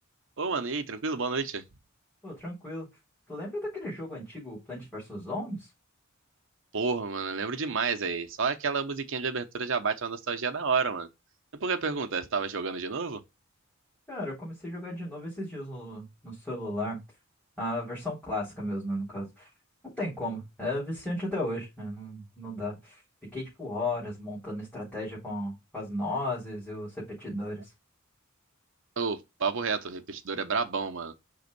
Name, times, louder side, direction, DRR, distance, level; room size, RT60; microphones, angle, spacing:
voice 1, 0.4-1.6 6.7-11.1 11.5-13.2 29.0-31.1, right 5 dB, 65° right, 0.8 m, -30 dB
voice 2, 2.2-2.9 3.3-5.7 14.1-17.0 17.6-19.5 19.8-27.7, left 1 dB, 5° left, 3.7 m, -35 dB
5.3 x 3.8 x 5.2 m
head